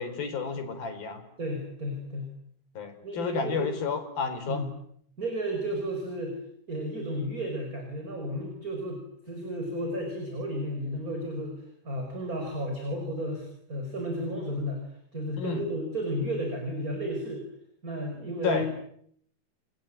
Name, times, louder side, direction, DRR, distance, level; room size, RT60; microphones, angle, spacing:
voice 1, 0.0-1.2 2.8-4.6 15.4-15.6 18.4-18.7, left 5 dB, 90° left, 7 dB, 6.3 m, -31 dB
voice 2, 1.4-2.3 3.0-3.7 4.5-4.7 5.2-6.4 6.7-11.6 11.8-14.8 15.1-17.4 17.8-18.7, equal, 25° right, 3 dB, 5.9 m, -33 dB
30.0 x 21.5 x 9.1 m, 0.68 s
omnidirectional pair, 4.1 m